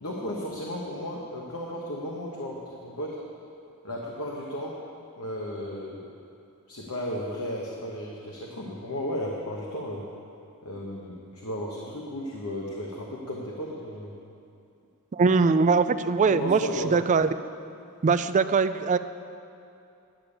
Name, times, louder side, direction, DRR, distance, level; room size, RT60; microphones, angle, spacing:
voice 1, 0.0-3.2 3.8-4.7 5.2-6.0 6.7-10.0 10.6-14.1 16.3-16.9, equal, 80° left, -3 dB, 1.3 m, -34 dB
voice 2, 15.1-16.6 16.9-17.3 18.0-19.0, right 4 dB, 35° right, 12 dB, 0.3 m, -21 dB
10.5 x 6.8 x 8.7 m, 2.6 s
head